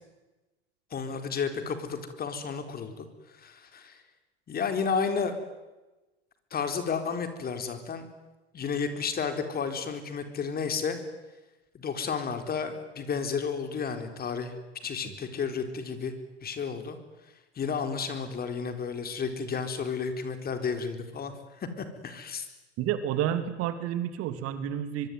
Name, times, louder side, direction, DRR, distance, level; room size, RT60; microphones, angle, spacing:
voice 1, 0.9-3.1 3.3-4.0 4.5-5.3 6.5-8.1 8.5-11.0 11.7-14.5 14.8-16.1 16.4-17.0 17.6-22.5, left 5 dB, 30° left, 8 dB, 4.2 m, -32 dB
voice 2, 22.8-25.1, right 10 dB, 45° right, 10 dB, 2.8 m, -30 dB
24.0 x 24.0 x 9.5 m, 1.1 s
figure-of-eight pair, 85°, 33 cm